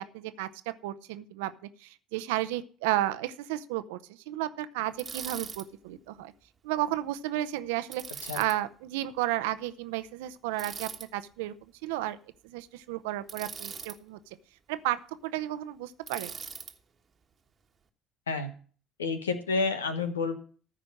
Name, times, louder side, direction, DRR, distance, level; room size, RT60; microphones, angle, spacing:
voice 1, 0.0-1.5 1.8-6.3 6.6-11.5 11.8-12.2 12.4-14.2 14.7-16.3, right 14 dB, 75° right, 13 dB, 0.7 m, -33 dB
Bicycle, 5.0-5.7 7.9-8.6 10.6-11.1 13.3-14.0 16.1-16.7, right 6 dB, 35° right, 1.3 m, -40 dB
voice 2, 19.0-20.4, left 4 dB, 85° left, 9 dB, 1.2 m, -29 dB
14.0 x 5.1 x 7.4 m, 0.42 s
hypercardioid pair, 60°, 0 cm